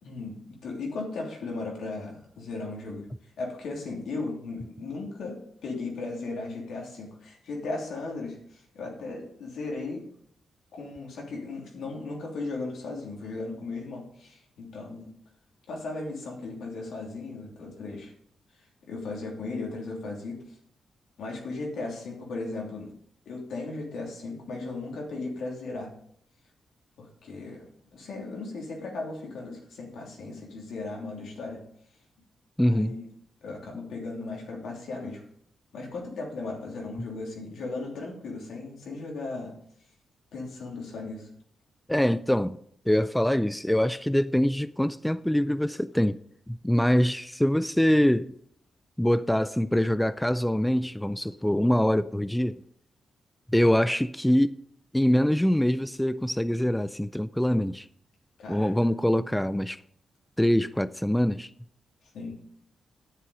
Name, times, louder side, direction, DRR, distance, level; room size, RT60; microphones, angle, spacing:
voice 1, 0.0-3.1 3.4-10.0 10.7-15.1 15.7-18.1 18.9-20.4 21.2-22.9 23.2-25.9 27.0-31.6 32.6-33.0 33.4-35.2 35.7-39.5 40.3-41.3 58.4-58.7 62.1-62.4, left 3 dB, 80° left, 3.0 m, -36 dB
voice 2, 32.6-32.9 41.9-42.6 42.9-46.2 46.5-48.3 49.0-52.6 53.5-54.6 54.9-57.9 58.5-59.8 60.4-61.5, equal, 5° left, 0.4 m, -24 dB
9.8 x 8.0 x 5.0 m
cardioid pair, 60°, 0 cm